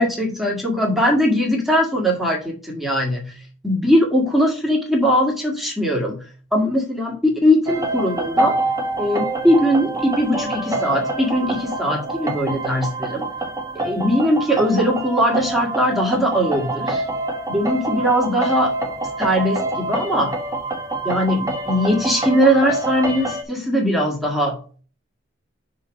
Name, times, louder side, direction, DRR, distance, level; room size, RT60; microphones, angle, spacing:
voice 1, 0.0-8.6 9.0-13.2 13.7-17.0 17.5-18.7 19.2-20.4 21.0-24.6, equal, ahead, -2 dB, 1.8 m, -20 dB
sound 1, 7.7-23.4, right 2 dB, 15° right, 1.1 m, -26 dB
6.1 x 3.9 x 5.9 m, 0.39 s
head